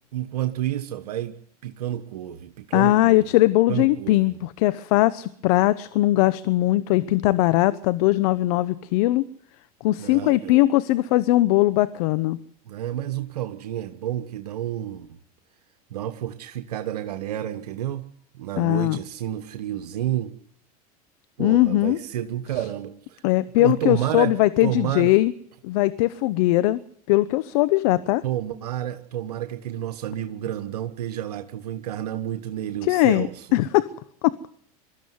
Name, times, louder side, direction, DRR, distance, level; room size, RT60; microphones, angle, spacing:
voice 1, 0.1-1.4 1.6-3.3 3.7-4.3 10.0-10.6 12.7-15.2 15.9-18.1 18.3-20.3 21.4-23.2 23.6-24.3 24.6-25.1 28.2-33.6, right 12 dB, 85° right, 8 dB, 1.2 m, -30 dB
voice 2, 2.7-9.2 9.8-12.4 18.6-19.0 21.4-22.0 23.2-25.3 25.6-26.8 27.1-28.2 32.9-33.3 33.5-33.9 34.2-34.3, left 17 dB, 70° left, 15 dB, 0.9 m, -20 dB
23.0 x 13.5 x 9.6 m, 0.65 s
hypercardioid pair, 95°, 20 cm